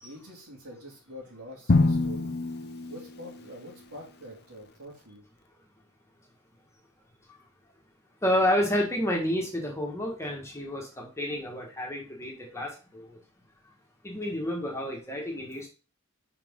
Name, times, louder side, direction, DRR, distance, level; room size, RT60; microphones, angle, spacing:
voice 1, 0.0-2.3 2.9-5.2, equal, 80° right, -4 dB, 3.2 m, -45 dB
Drum, 1.7-3.7, left 3 dB, 45° left, 0.7 m, -26 dB
voice 2, 8.2-13.2 14.0-15.7, left 1 dB, 10° left, 0 dB, 1.4 m, -30 dB
5.9 x 5.0 x 3.6 m, 0.34 s
head